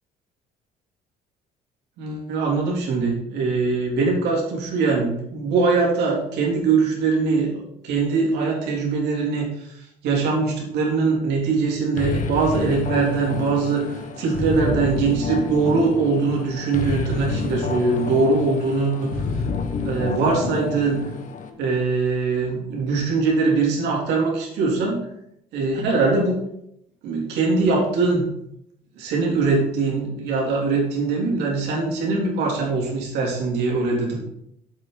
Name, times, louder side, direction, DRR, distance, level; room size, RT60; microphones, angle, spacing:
voice 1, 2.0-19.4 19.8-21.1 21.6-25.0 25.5-26.4 27.0-28.3 29.0-34.2, right 4 dB, 85° right, -2 dB, 3.1 m, -22 dB
sound 1, 12.0-21.5, left 5 dB, 50° left, 1.2 m, -29 dB
8.0 x 7.7 x 4.0 m, 0.78 s
cardioid pair, 110°, 17 cm